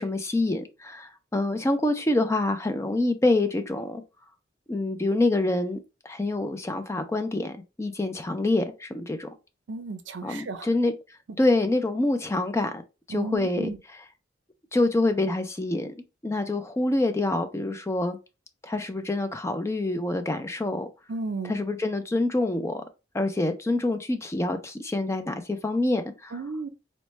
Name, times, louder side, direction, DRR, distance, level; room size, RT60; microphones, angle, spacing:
voice 1, 0.0-4.0 4.7-5.8 6.0-9.3 10.2-11.0 11.4-12.8 13.1-13.7 14.7-15.9 16.2-18.2 18.6-20.9 21.4-22.8 23.1-26.3, left 2 dB, 15° left, 0.3 m, -26 dB
voice 2, 9.7-10.7 13.1-13.8 21.1-21.5 26.3-26.7, right 3 dB, 70° right, 0.5 m, -34 dB
4.2 x 2.1 x 3.1 m
head